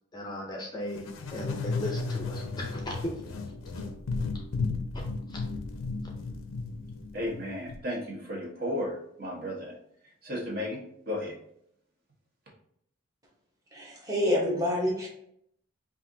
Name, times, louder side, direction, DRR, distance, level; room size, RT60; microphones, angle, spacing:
voice 1, 0.1-3.1 5.3-5.4, equal, 20° left, -1 dB, 0.5 m, -37 dB
sound 1, 1.0-7.8, left 3 dB, 90° left, 0.5 m, -34 dB
voice 2, 7.1-9.8 10.2-10.8 11.0-11.3, left 1 dB, 45° right, -3 dB, 1.2 m, -34 dB
voice 3, 13.7-15.1, left 1 dB, 15° right, -4 dB, 1.1 m, -27 dB
5.4 x 2.5 x 2.7 m, 0.70 s
head